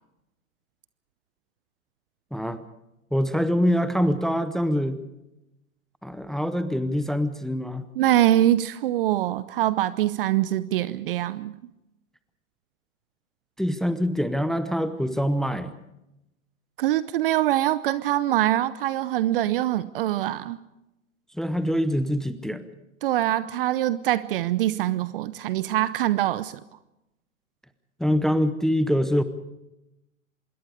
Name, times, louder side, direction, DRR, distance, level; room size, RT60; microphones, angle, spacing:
voice 1, 2.3-2.6 3.1-5.0 6.0-7.9 13.6-15.7 21.3-22.6 28.0-29.2, equal, ahead, 0.7 m, -24 dB
voice 2, 7.9-11.5 16.8-20.6 23.0-26.6, right 13 dB, 40° right, 0.7 m, -24 dB
25.5 x 21.5 x 5.0 m
hypercardioid pair, 115°, 42 cm